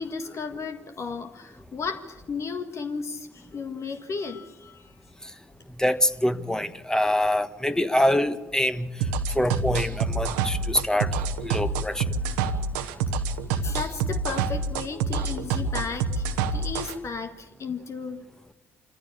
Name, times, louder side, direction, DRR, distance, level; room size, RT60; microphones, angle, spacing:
voice 1, 0.0-4.9 13.6-18.3, left 5 dB, 50° left, 8 dB, 1.6 m, -34 dB
voice 2, 5.8-8.9 9.3-11.1 11.4-12.0, left 1 dB, 10° left, 12 dB, 1.5 m, -24 dB
sound 1, 9.0-16.9, right 4 dB, 80° right, 1.2 m, -27 dB
26.0 x 14.5 x 8.5 m, 1.2 s
hypercardioid pair, 45°, 6 cm